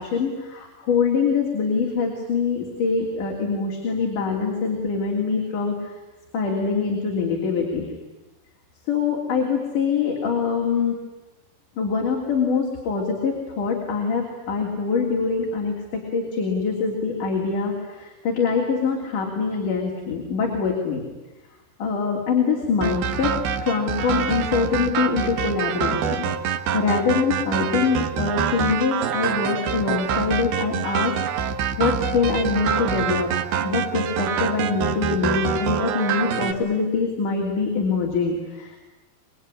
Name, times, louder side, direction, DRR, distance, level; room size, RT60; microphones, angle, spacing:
voice 1, 0.0-5.9 6.3-7.9 8.9-11.0 11.8-21.0 21.8-23.3 23.6-26.3 26.7-31.1 31.5-33.3 33.6-38.8, left 5 dB, 60° left, 0 dB, 4.6 m, -24 dB
sound 1, 22.8-36.5, right 7 dB, 90° right, 3.4 m, -26 dB
26.5 x 22.0 x 10.0 m, 1.1 s
omnidirectional pair, 4.2 m